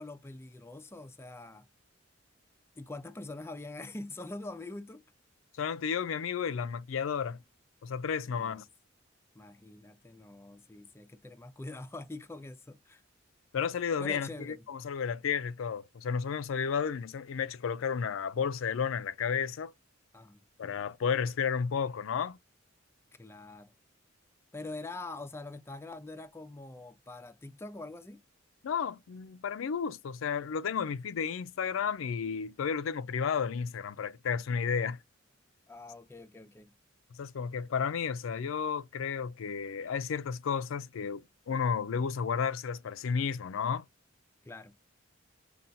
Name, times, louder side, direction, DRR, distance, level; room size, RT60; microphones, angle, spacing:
voice 1, 0.0-1.7 2.8-5.0 8.3-8.6 9.3-13.0 14.0-14.6 20.1-20.4 23.2-23.7 24.5-28.2 35.7-36.7 44.4-44.8, left 2 dB, 15° left, 0.4 m, -44 dB
voice 2, 5.6-7.4 7.8-8.6 13.5-19.7 20.6-22.4 28.6-35.0 37.2-43.9, left 6 dB, 80° left, 0.4 m, -32 dB
5.6 x 2.3 x 2.6 m
head